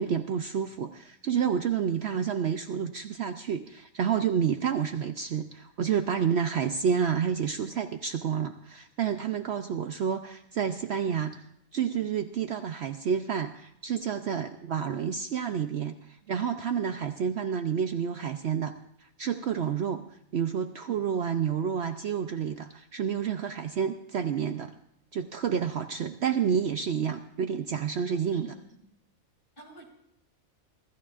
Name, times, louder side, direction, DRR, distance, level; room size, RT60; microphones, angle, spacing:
voice 1, 0.0-11.4 11.7-18.7 19.0-20.1 20.3-24.7 25.1-28.5, right 7 dB, 60° right, 8 dB, 0.8 m, -29 dB
voice 2, 28.1-28.9 29.6-29.8, right 1 dB, 40° left, 0 dB, 3.1 m, -51 dB
24.5 x 14.0 x 2.5 m, 0.75 s
omnidirectional pair, 1.4 m